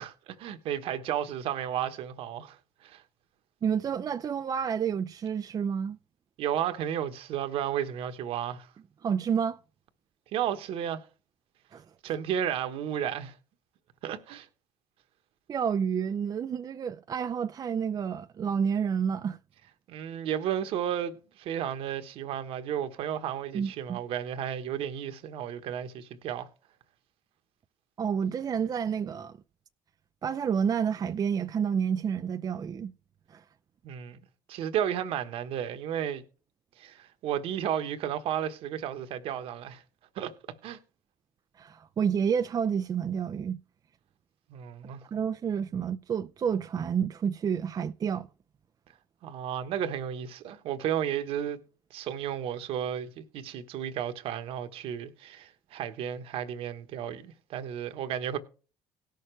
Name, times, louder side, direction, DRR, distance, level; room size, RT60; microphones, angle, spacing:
voice 1, 0.0-2.6 2.8-3.0 6.4-8.7 10.3-11.0 12.0-13.4 14.0-14.5 19.9-26.5 33.8-34.2 34.5-36.2 36.8-39.8 40.1-40.3 40.6-40.8 44.5-45.0 49.2-51.6 51.9-58.4, right 9 dB, 65° right, 1.3 m, -33 dB
voice 2, 3.6-6.0 9.0-9.6 11.7-11.8 15.5-19.4 23.5-24.0 28.0-29.4 30.2-32.9 33.3-33.4 41.6-43.6 45.1-48.3, right 7 dB, 40° right, 0.5 m, -29 dB
17.5 x 6.5 x 3.3 m
hypercardioid pair, 70°, 10 cm